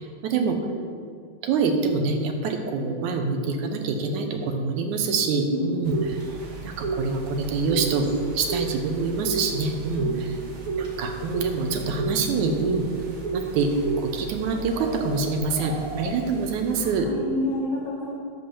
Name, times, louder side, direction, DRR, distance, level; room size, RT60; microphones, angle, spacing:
voice 1, 0.2-0.6 1.4-6.2 6.6-10.4 10.8-12.9 13.3-13.7 14.0-17.1, right 4 dB, 70° right, 4 dB, 2.1 m, -26 dB
voice 2, 5.5-5.8 10.0-10.3 15.4-15.6 16.9-18.1, left 1 dB, 40° left, -8 dB, 1.8 m, -30 dB
sound 1, 5.9-17.0, right 4 dB, 55° right, 1.8 m, -32 dB
11.0 x 6.0 x 7.1 m, 2.3 s
omnidirectional pair, 4.1 m